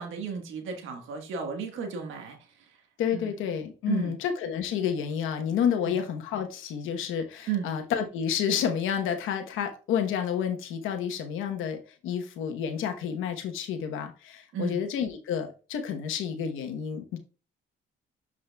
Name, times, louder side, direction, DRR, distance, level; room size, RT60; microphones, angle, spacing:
voice 1, 0.0-2.4 3.1-3.3 3.9-4.2 5.8-5.9 7.5-7.7 14.5-14.8, right 6 dB, 85° right, 1.4 m, -33 dB
voice 2, 3.0-17.2, left 8 dB, 90° left, 1.0 m, -30 dB
9.7 x 4.9 x 2.3 m
cardioid pair, 90°, 20 cm